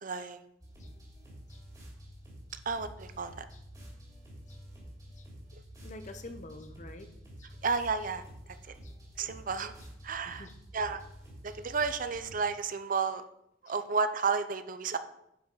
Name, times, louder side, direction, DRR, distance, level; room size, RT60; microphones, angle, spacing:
voice 1, 0.0-0.4 2.7-3.4 5.5-5.6 7.6-8.2 9.2-9.7 10.0-10.5 10.7-11.0 11.4-13.2 13.6-15.0, right 5 dB, 45° right, 11 dB, 0.6 m, -32 dB
sound 1, 0.6-12.4, equal, 20° right, 3.4 m, -49 dB
voice 2, 5.8-7.1 7.4-7.5 8.8-8.9 10.3-10.5 13.7-13.8, left 2 dB, 40° left, 8 dB, 0.9 m, -47 dB
10.0 x 5.6 x 5.6 m, 0.80 s
head